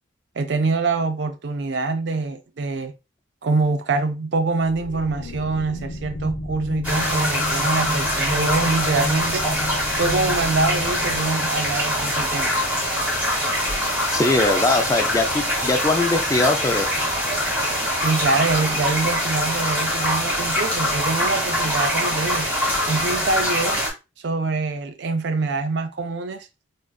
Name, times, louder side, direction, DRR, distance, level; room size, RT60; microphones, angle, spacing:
voice 1, 0.4-2.9 3.4-9.5 10.0-12.5 18.0-22.5 22.9-23.8 24.2-26.5, right 3 dB, 65° right, 0.4 m, -24 dB
sound 1, 4.6-12.9, left 1 dB, 75° left, 0.5 m, -33 dB
sound 2, 6.8-23.9, equal, 10° right, 1.0 m, -23 dB
voice 2, 14.1-16.9, left 2 dB, 15° left, 0.3 m, -21 dB
4.1 x 2.5 x 2.2 m
head